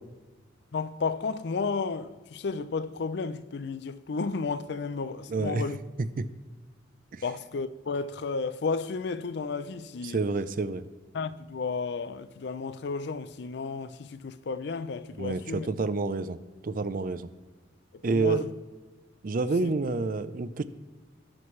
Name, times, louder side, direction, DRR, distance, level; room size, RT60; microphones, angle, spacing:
voice 1, 0.7-5.8 7.2-10.2 11.1-15.7 18.1-18.5 19.6-19.7, left 4 dB, 60° left, 0.4 m, -32 dB
voice 2, 5.3-5.6 6.0-6.3 7.1-7.2 10.0-10.8 15.2-16.4 16.6-17.3 18.0-18.4 19.2-20.6, right 3 dB, 50° right, 0.4 m, -28 dB
18.0 x 6.0 x 3.2 m
head